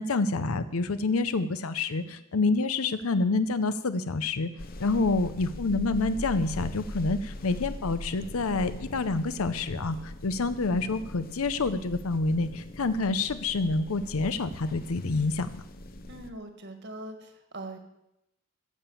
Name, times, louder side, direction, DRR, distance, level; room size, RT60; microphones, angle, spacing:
voice 1, 0.0-4.5 4.8-15.5, left 3 dB, 85° left, 12 dB, 0.7 m, -27 dB
sound 1, 4.6-16.3, left 1 dB, 45° left, 0.8 m, -41 dB
voice 2, 16.1-17.8, right 1 dB, 55° right, 5 dB, 1.7 m, -41 dB
14.5 x 7.0 x 7.1 m, 0.86 s
head